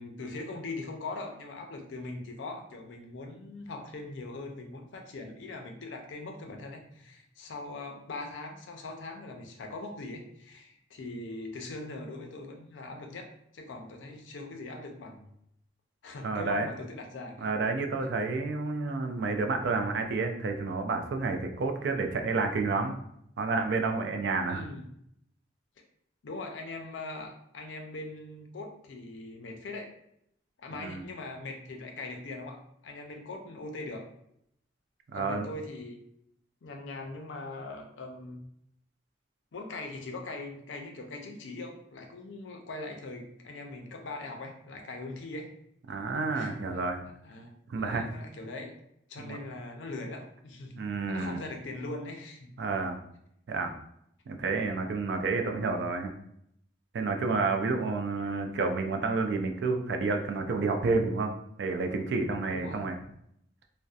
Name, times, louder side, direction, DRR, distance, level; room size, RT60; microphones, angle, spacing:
voice 1, 0.0-13.3 13.5-15.4 16.0-17.5 24.5-24.8 26.2-29.9 30.6-34.1 35.1-36.0 36.6-38.4 39.5-45.5 46.3-46.6 47.2-48.7 49.1-50.8 51.1-52.5 62.5-62.8, left 2 dB, 85° left, 3 dB, 0.5 m, -41 dB
voice 2, 16.2-16.7 17.4-23.0 23.4-24.6 30.8-31.0 35.1-35.5 45.9-47.0 47.7-48.0 49.2-49.4 50.7-51.4 52.6-53.0 53.5-53.7 54.3-56.1 56.9-61.3 61.6-63.0, right 3 dB, 65° right, 5 dB, 0.3 m, -30 dB
2.6 x 2.0 x 2.3 m, 0.74 s
head